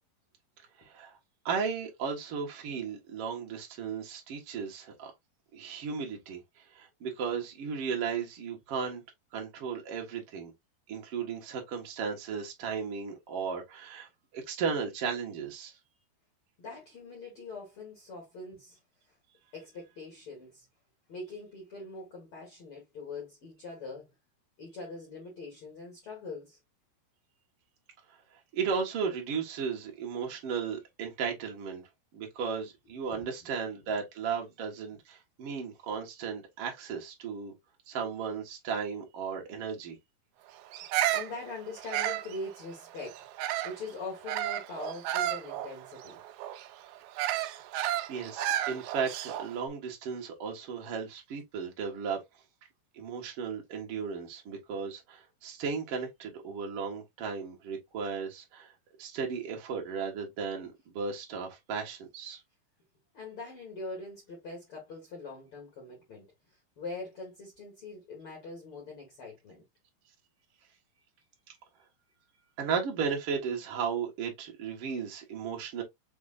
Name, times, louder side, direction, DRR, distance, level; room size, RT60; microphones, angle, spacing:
voice 1, 0.8-1.1 1.4-5.1 5.5-9.0 9.3-10.5 10.9-15.8 28.5-37.5 37.9-40.0 48.1-52.2 52.9-58.7 59.0-62.4 72.6-75.8, right 6 dB, 60° right, 1.6 m, -35 dB
voice 2, 16.6-18.8 19.1-19.2 19.5-20.7 21.1-24.1 24.6-26.6 33.1-33.3 41.1-46.2 63.1-69.6, left 3 dB, 45° left, 2.0 m, -43 dB
Bird vocalization bird call bird song, 40.7-43.8 44.3-49.6, right 13 dB, 80° right, 2.4 m, -32 dB
6.1 x 3.2 x 2.5 m
omnidirectional pair, 4.5 m